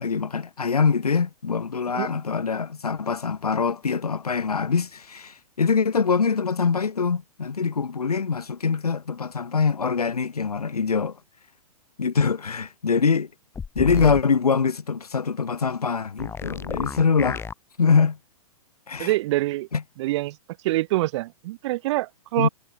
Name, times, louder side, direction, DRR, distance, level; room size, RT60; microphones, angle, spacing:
voice 1, 0.0-11.2 12.0-13.3 13.7-17.4 17.8-18.2 18.9-19.1 19.7-19.8 22.4-22.5, left 5 dB, 85° left, 6.1 m, -23 dB
sound 1, 13.5-14.2 16.2-17.5, left 6 dB, 15° left, 1.6 m, -32 dB
voice 2, 19.0-19.7 20.0-20.4 20.6-22.5, right 18 dB, 50° right, 4.7 m, -25 dB
hypercardioid pair, 115°, 19 cm